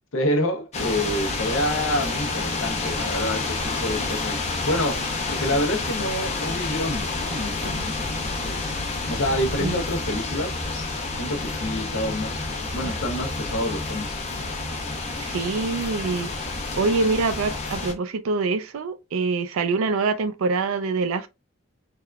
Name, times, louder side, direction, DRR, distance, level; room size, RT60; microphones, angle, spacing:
voice 1, 0.1-8.7 9.1-10.6 11.2-12.4 12.7-14.2, left 1 dB, 70° left, 0.7 m, -28 dB
sound 1, 0.7-17.9, left 3 dB, 35° left, 0.7 m, -29 dB
voice 2, 15.2-16.3 16.7-21.3, right 4 dB, 85° right, 0.4 m, -25 dB
3.4 x 2.3 x 2.2 m
head